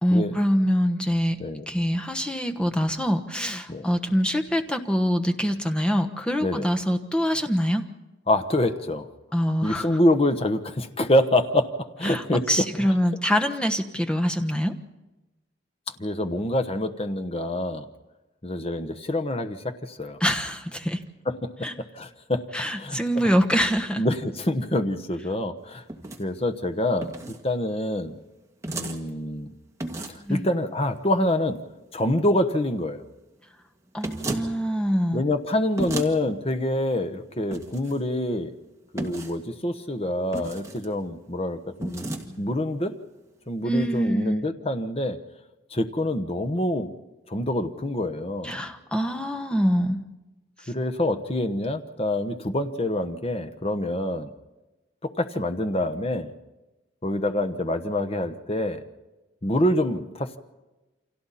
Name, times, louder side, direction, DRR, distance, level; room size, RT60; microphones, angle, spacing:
voice 1, 0.0-7.8 9.3-10.0 12.0-14.7 20.2-21.0 21.6-21.7 22.5-24.0 30.2-30.5 33.9-35.2 42.2-42.5 43.6-44.4 48.4-50.0, equal, 5° left, 4 dB, 1.2 m, -25 dB
voice 2, 8.3-9.1 9.6-11.7 12.0-13.0 16.0-17.9 18.4-20.2 21.3-22.4 22.8-23.0 24.0-25.8 26.2-27.1 27.4-28.2 28.7-29.5 30.3-31.6 31.9-33.0 35.1-38.5 38.9-42.0 42.4-43.0 43.5-45.2 45.7-46.9 47.3-48.6 50.7-54.3 55.0-56.3 57.0-58.8 59.4-60.4, left 1 dB, 30° left, 9 dB, 1.2 m, -26 dB
sound 1, 25.9-26.2 27.0-27.4 28.6-29.0 29.8-30.3 34.0-34.5 35.8-36.1 37.5-37.9 39.0-39.4 40.3-40.9 41.8-42.2, right 2 dB, 15° right, 1.8 m, -32 dB
29.5 x 25.5 x 4.2 m, 1.1 s
head